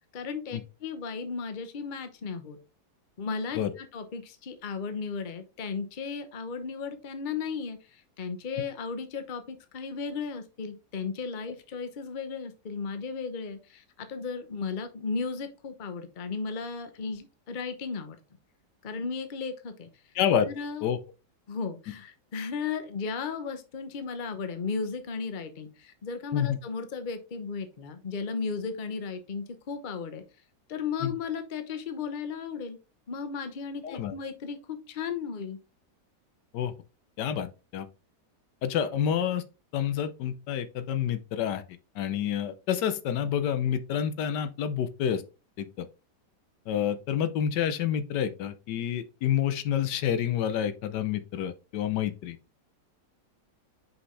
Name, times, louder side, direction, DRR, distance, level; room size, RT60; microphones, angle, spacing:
voice 1, 0.1-2.6 3.2-18.2 18.8-19.9 20.4-20.9 21.5-30.2 30.7-32.8 33.1-35.6, left 5 dB, 40° left, 0.8 m, -35 dB
voice 2, 20.1-20.5 20.8-21.0 26.3-26.6 31.0-31.1 33.8-34.1 36.5-36.7 37.2-37.5 37.7-37.9 38.6-39.4 39.7-41.6 41.9-45.2 45.6-45.8 46.7-52.4, left 9 dB, 80° left, 1.3 m, -28 dB
6.0 x 5.3 x 3.2 m
omnidirectional pair, 1.8 m